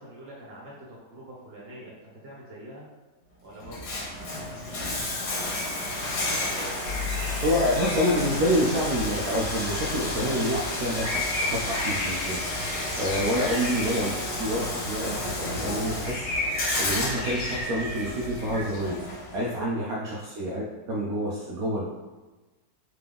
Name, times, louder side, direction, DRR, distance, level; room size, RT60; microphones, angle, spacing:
voice 1, 0.0-2.9 3.4-5.6 6.0-6.4 19.8-20.0, right 1 dB, 40° right, -5 dB, 1.4 m, -46 dB
Bathtub (filling or washing), 3.6-19.6, left 1 dB, 80° left, 1.6 m, -32 dB
sound 1, 6.8-18.6, left 2 dB, 50° left, 1.4 m, -34 dB
voice 2, 7.4-16.3 16.5-19.0 19.3-21.9, equal, 70° right, -5 dB, 1.1 m, -28 dB
3.7 x 3.3 x 3.4 m, 1.2 s
omnidirectional pair, 1.7 m